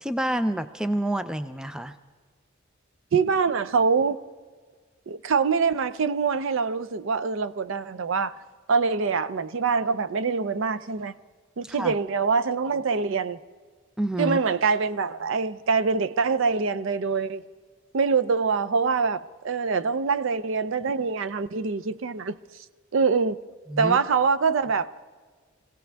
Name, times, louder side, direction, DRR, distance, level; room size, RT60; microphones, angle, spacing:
voice 1, 0.0-2.0 11.6-11.9 14.0-14.4 23.7-24.0, right 1 dB, 5° right, 0.3 m, -28 dB
voice 2, 3.1-4.2 5.1-8.4 8.7-11.1 11.6-13.4 14.2-17.4 17.9-22.4 22.9-23.4 23.8-24.9, right 5 dB, 60° right, 0.5 m, -24 dB
23.5 x 16.5 x 3.4 m
head